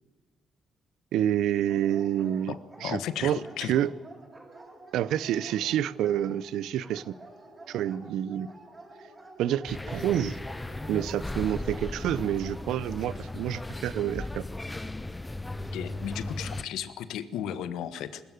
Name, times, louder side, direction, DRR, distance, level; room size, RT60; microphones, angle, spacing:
voice 1, 1.1-3.9 4.9-7.1 7.7-8.5 9.4-10.4 10.9-14.4, right 11 dB, 85° right, 20 dB, 0.6 m, -28 dB
Dog, 1.7-13.9, right 2 dB, 25° right, 7.0 m, -49 dB
voice 2, 2.8-3.7 15.7-18.2, left 10 dB, 85° left, 13 dB, 1.3 m, -34 dB
sound 1, 9.7-16.6, left 2 dB, 15° left, 0.8 m, -36 dB
21.5 x 13.5 x 9.4 m, 1.3 s
cardioid pair, 90°, 0 cm